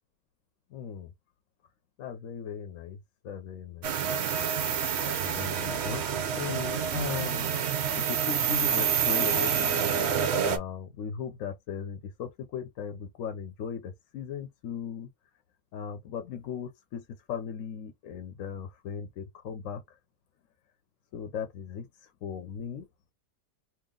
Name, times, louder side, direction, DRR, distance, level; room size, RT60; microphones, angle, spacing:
voice 1, 0.7-1.1 2.0-3.9 5.0-6.0 6.4-7.6 7.9-15.1 15.7-19.8 21.1-22.9, left 7 dB, 65° left, 0.9 m, -38 dB
sound 1, 3.8-10.6, right 7 dB, 60° right, 0.7 m, -28 dB
2.9 x 2.7 x 3.8 m
omnidirectional pair, 1.8 m